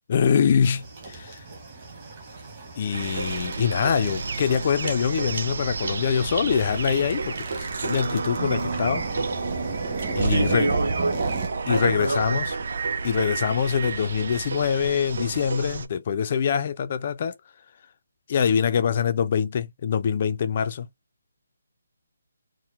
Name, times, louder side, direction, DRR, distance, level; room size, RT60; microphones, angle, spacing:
voice 1, 0.1-1.4 2.8-9.0 10.1-10.7 11.7-12.5 13.0-17.3 18.3-20.9, left 7 dB, 25° left, 0.3 m, -24 dB
sound 1, 0.6-11.5, right 3 dB, 25° right, 0.9 m, -37 dB
sound 2, 2.9-15.9, right 4 dB, 45° right, 0.5 m, -30 dB
voice 2, 10.3-11.1 11.7-12.4, right 2 dB, 85° right, 1.4 m, -26 dB
4.4 x 2.0 x 3.4 m
hypercardioid pair, 180°, 0 cm